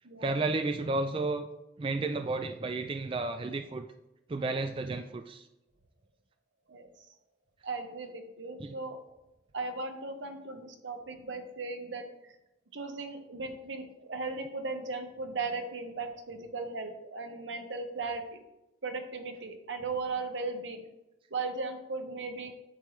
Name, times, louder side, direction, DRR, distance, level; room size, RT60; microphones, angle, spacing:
voice 1, 0.2-1.5 1.8-3.9 4.3-5.5 8.6-8.7, right 3 dB, 25° right, 7 dB, 0.3 m, -32 dB
voice 2, 6.7-7.1 7.6-9.0 9.5-12.3 12.7-18.4 18.8-20.8 21.3-22.5, right 3 dB, 75° right, 6 dB, 1.0 m, -37 dB
8.9 x 6.5 x 3.1 m, 0.94 s
head